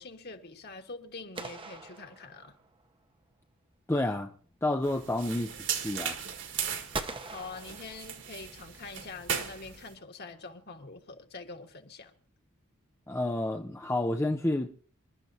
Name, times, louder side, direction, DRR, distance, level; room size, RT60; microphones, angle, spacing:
voice 1, 0.0-2.6 7.3-12.1, left 3 dB, 45° left, 1.6 m, -45 dB
sound 1, 1.4-2.8 6.9-8.5, right 3 dB, 25° right, 0.8 m, -41 dB
voice 2, 3.9-4.3 4.6-5.5 5.8-6.2 13.1-14.7, left 1 dB, 10° left, 0.6 m, -29 dB
sound 2, 4.8-9.9, right 8 dB, 55° right, 1.8 m, -37 dB
27.0 x 12.0 x 2.8 m
head